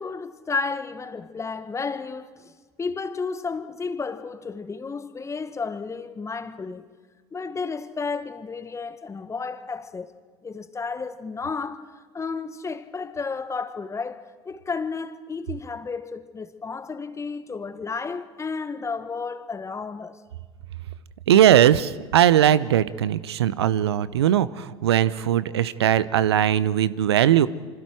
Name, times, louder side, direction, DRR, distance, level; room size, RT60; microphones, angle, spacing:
voice 1, 0.0-2.5 2.8-6.8 7.3-10.1 10.4-20.2, left 4 dB, 20° left, 1.5 m, -32 dB
voice 2, 21.3-27.5, right 11 dB, 80° right, 0.7 m, -19 dB
28.5 x 25.0 x 4.7 m
hypercardioid pair, 75°, 14 cm